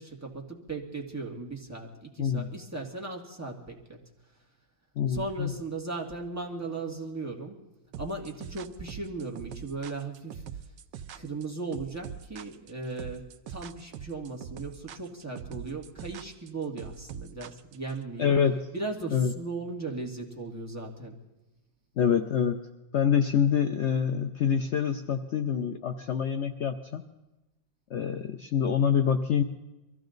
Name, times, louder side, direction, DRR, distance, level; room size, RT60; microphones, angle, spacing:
voice 1, 0.0-4.0 5.1-7.6 8.0-10.4 11.1-18.4 18.7-21.2, right 3 dB, 10° right, -2 dB, 2.0 m, -37 dB
voice 2, 2.2-2.5 5.0-5.5 18.2-18.7 19.1-19.3 22.0-22.6 22.9-27.1 27.9-29.4, left 7 dB, 75° left, 6 dB, 0.6 m, -26 dB
sound 1, 7.9-18.0, right 9 dB, 70° right, 1.3 m, -42 dB
23.0 x 15.5 x 3.9 m, 1.0 s
omnidirectional pair, 2.0 m